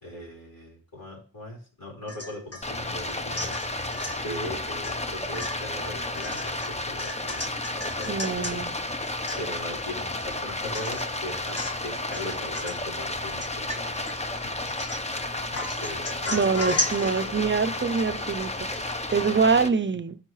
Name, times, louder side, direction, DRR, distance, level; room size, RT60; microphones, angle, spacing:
voice 1, 0.0-3.5 4.2-7.2 7.4-8.6 9.4-11.6 11.8-14.0 14.3-14.8 15.0-17.8, left 1 dB, 80° left, 4.4 m, -39 dB
Domestic sounds home sounds / Chink clink / Drip, 2.1-2.7 3.0-4.2 4.8-5.0 5.3-8.6 8.9-9.0 9.3-9.8 10.2-10.3 10.7-11.2 11.5-11.9 12.1-12.8 13.4-14.1 14.6-15.2 15.5-18.8 19.1-19.2, left 1 dB, 45° left, 1.4 m, -35 dB
Stream, 2.6-19.7, left 2 dB, 20° left, 0.7 m, -32 dB
voice 2, 8.1-8.7 16.3-18.7 19.1-20.2, right 5 dB, 35° right, 0.5 m, -24 dB
14.5 x 4.9 x 3.1 m
wide cardioid pair, 70°, 34 cm